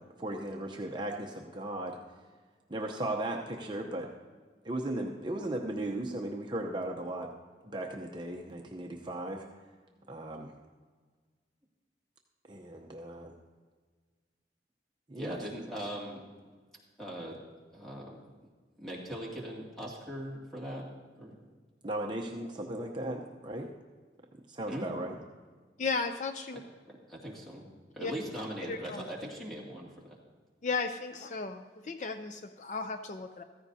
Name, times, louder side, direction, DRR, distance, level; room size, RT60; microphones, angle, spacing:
voice 1, 0.0-2.0 2.7-4.1 4.6-7.3 7.6-9.4 10.1-10.5 12.5-13.3 15.1-15.4 21.8-23.7 24.5-25.2, right 1 dB, 25° right, 1 dB, 0.7 m, -36 dB
voice 2, 15.2-16.2 17.0-17.4 17.7-18.2 18.8-20.9 21.2-21.3 24.7-24.9 27.1-27.6 27.9-30.2, equal, ahead, -5 dB, 2.4 m, -40 dB
voice 3, 25.8-26.6 28.0-28.1 28.7-29.0 30.6-33.4, left 4 dB, 40° left, 7 dB, 0.5 m, -35 dB
14.5 x 14.5 x 2.7 m, 1.5 s
head